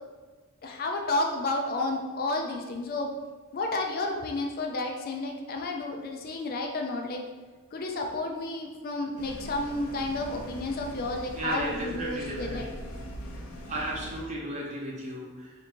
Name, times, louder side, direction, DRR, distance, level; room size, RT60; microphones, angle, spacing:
voice 1, 0.6-3.1 3.5-7.2 7.7-12.7, left 2 dB, 40° left, 2 dB, 0.4 m, -31 dB
sound 1, 9.2-14.2, equal, 85° left, 0.7 m, -41 dB
voice 2, 11.3-12.8 13.7-15.5, right 1 dB, 30° right, -3 dB, 0.8 m, -34 dB
3.6 x 2.6 x 4.3 m, 1.3 s
head